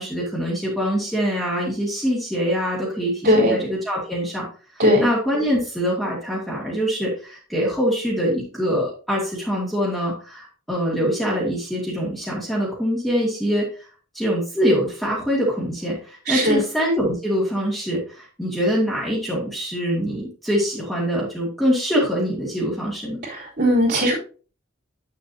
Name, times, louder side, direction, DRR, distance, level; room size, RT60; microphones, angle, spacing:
voice 1, 0.0-4.5 4.7-13.9 14.1-23.2, equal, ahead, -7 dB, 2.2 m, -24 dB
voice 2, 3.2-3.6 4.8-5.0 16.3-16.6 23.2-24.1, equal, 55° right, -6 dB, 3.4 m, -18 dB
8.6 x 6.9 x 2.8 m, 0.38 s
head